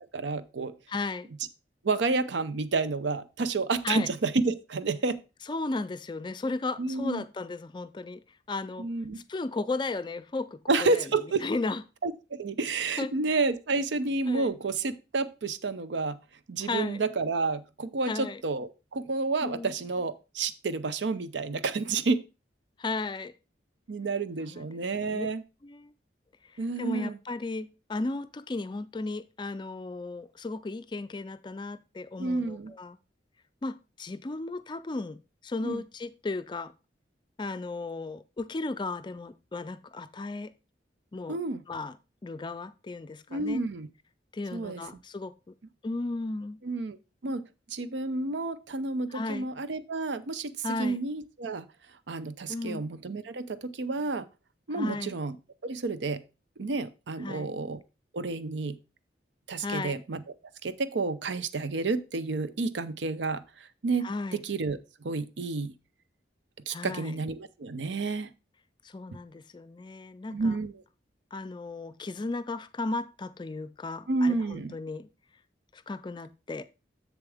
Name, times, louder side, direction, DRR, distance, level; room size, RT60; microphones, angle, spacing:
voice 1, 0.1-0.7 1.8-5.2 6.8-7.2 8.8-9.2 10.7-11.4 12.0-16.2 16.5-22.2 23.9-25.4 26.6-27.2 32.2-32.7 35.6-35.8 41.3-41.6 43.3-43.9 44.5-44.8 46.6-47.0 47.2-47.4 47.7-51.7 52.1-54.2 54.7-55.4 55.6-56.2 56.6-57.8 58.1-58.8 59.5-60.2 60.6-64.8 65.0-65.7 66.7-68.3 70.3-70.8 74.1-74.7, right 3 dB, 85° right, 0.6 m, -30 dB
voice 2, 0.9-1.3 3.8-4.1 5.5-8.2 8.5-8.9 9.3-10.6 10.9-11.0 11.4-11.8 13.0-13.1 14.3-14.5 16.6-17.0 18.1-18.4 19.4-19.7 22.8-23.3 24.4-24.7 25.0-25.3 25.6-25.9 26.8-33.0 33.6-35.2 35.4-36.7 37.4-40.5 41.1-41.4 41.7-42.0 42.2-43.6 44.3-45.3 45.8-46.6 49.1-49.5 50.6-51.0 52.5-52.8 54.7-55.1 57.2-57.5 59.6-60.0 64.0-64.4 66.7-67.2 68.8-70.6 71.3-75.1 75.7-76.6, left 3 dB, 25° left, 0.4 m, -35 dB
7.3 x 7.0 x 3.4 m
head